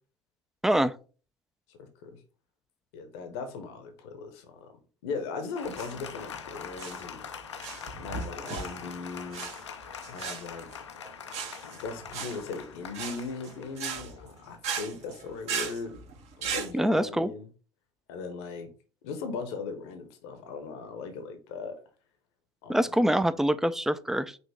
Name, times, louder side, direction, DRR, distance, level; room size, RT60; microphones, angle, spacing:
voice 1, 0.6-0.9 16.7-17.3 22.7-24.4, right 1 dB, 5° right, 0.3 m, -25 dB
voice 2, 1.7-2.2 2.9-4.7 5.0-7.2 8.0-9.5 10.1-10.7 11.7-16.0 16.4-17.5 18.1-18.7 19.0-21.8 22.6-22.9, left 4 dB, 60° left, 0.9 m, -38 dB
Applause, 5.6-14.6, left 7 dB, 80° left, 0.5 m, -43 dB
sound 1, 5.6-16.7, right 6 dB, 50° right, 1.0 m, -38 dB
5.3 x 2.9 x 3.4 m
figure-of-eight pair, 65°, 15 cm